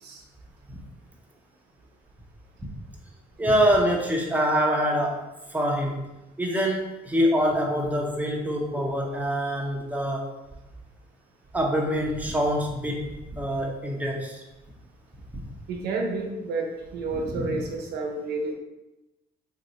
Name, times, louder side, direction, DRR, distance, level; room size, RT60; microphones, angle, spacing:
voice 1, 3.4-5.2 5.5-5.9 6.4-10.3 11.5-14.4 17.1-17.5, equal, 10° right, 0 dB, 0.7 m, -25 dB
voice 2, 15.7-18.5, right 3 dB, 75° right, 1 dB, 0.7 m, -30 dB
3.6 x 2.6 x 3.0 m, 0.98 s
cardioid pair, 110°, 17 cm